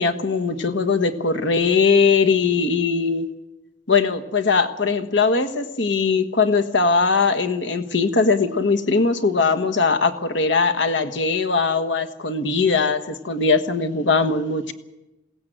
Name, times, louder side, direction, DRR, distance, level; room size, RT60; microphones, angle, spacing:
voice 1, 0.0-3.3 3.9-14.7, left 4 dB, 70° left, 8 dB, 1.4 m, -20 dB
21.5 x 17.5 x 7.9 m, 1.0 s
head